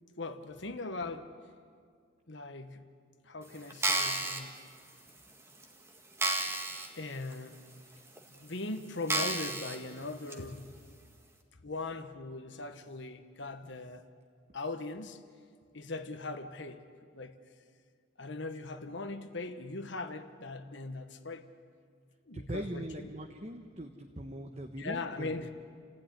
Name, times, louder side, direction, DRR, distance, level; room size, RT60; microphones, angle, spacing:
voice 1, 0.2-1.3 2.3-2.8 3.2-4.5 7.0-7.6 8.3-10.8 11.6-14.0 14.5-15.2 15.7-16.8 17.1-17.3 18.2-21.4 22.3-23.1 24.8-25.5, left 3 dB, 65° left, 1.3 m, -40 dB
sound 1, 3.7-4.4 5.1-5.2 5.6-5.7 6.2-6.9 7.3-7.4 8.2-8.3 9.1-9.8 10.3-10.4, right 2 dB, 15° right, 1.7 m, -31 dB
voice 2, 22.3-25.4, right 1 dB, 35° right, 1.2 m, -41 dB
29.0 x 15.5 x 9.9 m
head